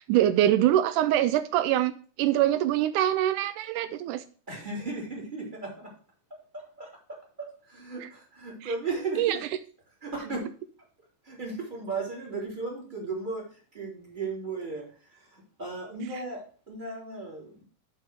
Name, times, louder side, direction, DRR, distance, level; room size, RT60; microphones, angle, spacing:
voice 1, 0.1-1.9 2.2-4.2 8.6-8.7 9.2-9.4, right 12 dB, 85° right, 12 dB, 2.1 m, -24 dB
voice 2, 4.5-5.9 6.5-6.9 7.7-9.4 10.0-10.5 11.2-13.4 13.7-14.8 15.3-17.6, right 3 dB, 15° right, -2 dB, 3.1 m, -35 dB
7.4 x 5.1 x 6.2 m, 0.41 s
omnidirectional pair, 3.6 m